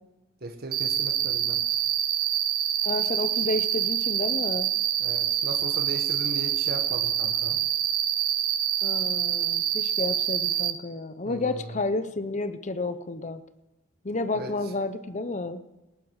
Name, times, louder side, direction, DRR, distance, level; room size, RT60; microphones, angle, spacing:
voice 1, 0.4-1.6 5.0-7.6 11.2-11.8 14.3-14.5, right 2 dB, 45° right, 5 dB, 1.6 m, -37 dB
Cricket, 0.7-10.7, right 10 dB, 85° right, 1.1 m, -26 dB
voice 2, 2.8-4.7 8.8-13.4 14.0-15.6, left 2 dB, 35° left, 11 dB, 0.8 m, -31 dB
18.5 x 15.0 x 4.8 m, 1.0 s
head